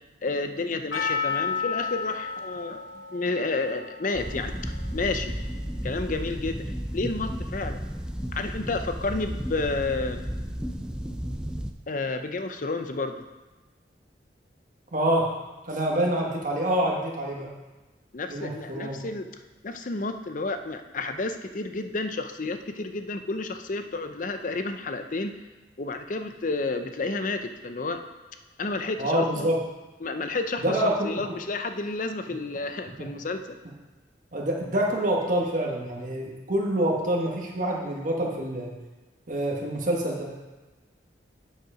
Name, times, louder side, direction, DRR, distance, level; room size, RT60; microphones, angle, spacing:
voice 1, 0.2-2.9 3.1-4.5 4.9-5.3 5.8-6.7 6.9-7.8 8.3-10.2 11.9-13.2 18.1-19.3 19.6-25.3 25.8-28.0 28.6-29.5 30.0-33.6, left 3 dB, 45° left, 8 dB, 0.6 m, -31 dB
Percussion, 0.9-5.8, left 6 dB, 90° left, 1.0 m, -33 dB
sound 1, 4.1-11.7, equal, 5° right, 0.4 m, -33 dB
voice 2, 14.9-15.4 15.7-17.5 18.3-19.1 29.0-29.6 30.6-31.4 32.3-32.4 33.0-33.1 34.3-38.7 39.3-40.5, right 1 dB, 45° right, -1 dB, 1.4 m, -26 dB
9.1 x 5.5 x 4.9 m, 1.2 s
head